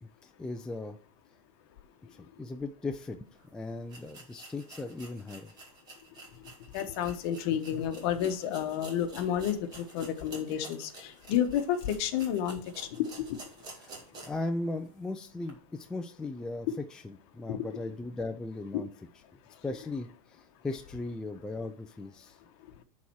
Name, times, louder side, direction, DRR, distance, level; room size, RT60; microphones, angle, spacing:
voice 1, 0.0-1.0 2.1-3.2 3.5-5.5 13.7-18.9 19.6-22.4, left 2 dB, 5° left, 5 dB, 0.4 m, -38 dB
sound 1, 3.3-3.4 3.9-14.5 14.9-15.0 15.4-15.5, right 3 dB, 25° right, 2.0 m, -50 dB
voice 2, 6.7-13.1 17.5-17.6, left 10 dB, 50° left, 8 dB, 1.1 m, -31 dB
10.5 x 4.2 x 4.6 m, 0.41 s
supercardioid pair, 155°, 17 cm